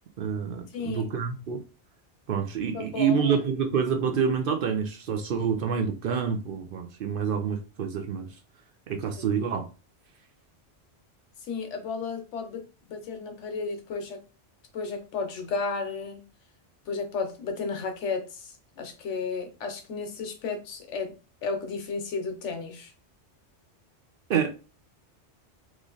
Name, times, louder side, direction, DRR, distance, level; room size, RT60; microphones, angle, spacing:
voice 1, 0.2-1.6 2.3-8.3 8.9-9.7 24.3-24.5, right 6 dB, 60° right, 0.7 m, -27 dB
voice 2, 0.7-1.1 2.7-3.4 9.2-9.4 11.4-14.2 14.7-16.2 16.9-21.2 21.4-22.9, left 4 dB, 80° left, 1.1 m, -33 dB
3.1 x 2.5 x 3.8 m
omnidirectional pair, 1.2 m